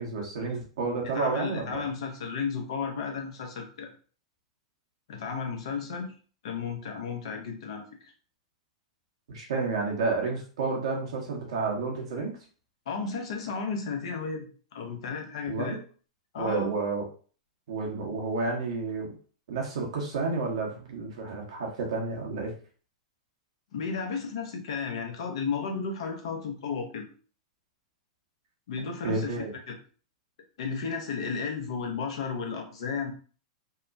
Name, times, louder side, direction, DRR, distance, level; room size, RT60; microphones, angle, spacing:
voice 1, 0.0-1.9 9.3-12.3 15.5-15.8 16.4-17.0 17.7-19.1 19.5-22.5 29.0-29.5, right 3 dB, 70° right, 0 dB, 0.9 m, -30 dB
voice 2, 1.1-3.9 5.1-6.1 6.4-8.1 12.9-15.8 16.3-16.7 23.7-27.0 28.7-29.4 29.7-29.8 30.6-33.1, left 5 dB, 65° left, 3 dB, 0.7 m, -33 dB
2.8 x 2.1 x 2.6 m, 0.41 s
hypercardioid pair, 105°, 3 cm